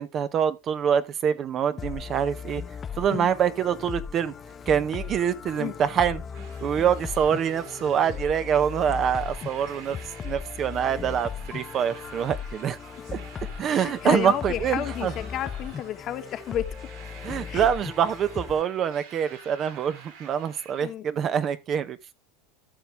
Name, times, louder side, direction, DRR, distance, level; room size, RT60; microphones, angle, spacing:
voice 1, 0.0-2.6 3.0-4.3 4.7-10.0 10.2-12.8 13.1-13.2 13.6-15.1 17.2-22.0, right 8 dB, 35° right, 0.8 m, -25 dB
sound 1, 1.8-18.6, left 6 dB, 25° left, 0.6 m, -37 dB
sound 2, 4.2-16.1, left 7 dB, 85° left, 2.2 m, -55 dB
sound 3, 6.3-20.9, right 6 dB, 70° right, 6.2 m, -49 dB
voice 2, 13.7-16.7 17.5-17.7 20.8-21.0, left 11 dB, 40° left, 1.4 m, -31 dB
13.5 x 5.7 x 3.4 m
supercardioid pair, 120°, 0 cm